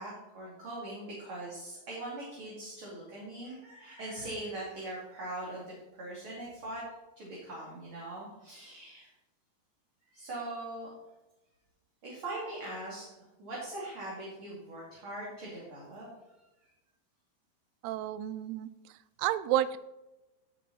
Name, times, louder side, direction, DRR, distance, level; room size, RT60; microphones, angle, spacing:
voice 1, 0.0-6.8 7.2-9.1 10.1-10.9 12.0-13.0 13.4-16.1, right 1 dB, 35° right, -5 dB, 3.2 m, -41 dB
voice 2, 17.8-18.7 19.2-19.8, right 12 dB, 90° right, 15 dB, 2.6 m, -30 dB
16.5 x 7.0 x 4.2 m, 1.0 s
omnidirectional pair, 4.6 m